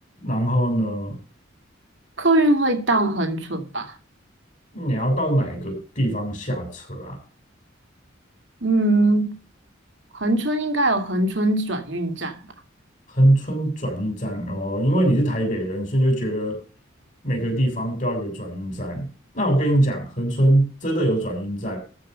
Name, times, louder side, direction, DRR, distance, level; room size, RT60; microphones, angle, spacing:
voice 1, 0.2-1.2 4.7-7.2 13.1-16.6 17.2-19.1 19.3-21.8, right 1 dB, 40° left, 6.9 m, -23 dB
voice 2, 2.2-3.9 8.6-9.3 10.1-12.4, right 2 dB, 65° right, 2.6 m, -21 dB
14.0 x 5.7 x 6.7 m
head